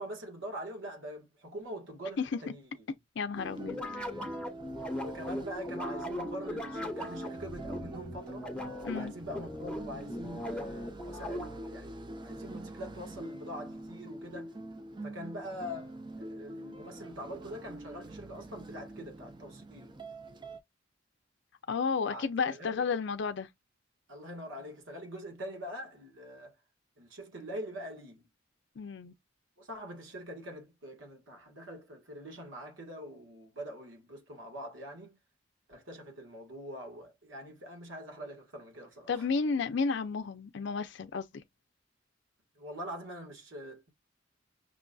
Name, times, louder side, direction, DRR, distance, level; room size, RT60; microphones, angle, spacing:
voice 1, 0.0-2.7 4.9-8.5 8.9-14.5 15.0-20.0 22.1-22.9 24.1-26.5 27.0-28.2 29.6-35.2 35.7-39.3 42.6-43.9, equal, 85° right, 1.6 m, -44 dB
voice 2, 3.2-3.8 8.8-9.1 21.7-23.5 28.8-29.1 39.1-41.4, left 5 dB, 65° left, 0.5 m, -32 dB
sound 1, 3.3-20.6, right 1 dB, 25° right, 0.5 m, -45 dB
sound 2, 3.7-11.8, left 1 dB, 5° left, 0.9 m, -39 dB
6.0 x 2.5 x 2.3 m
head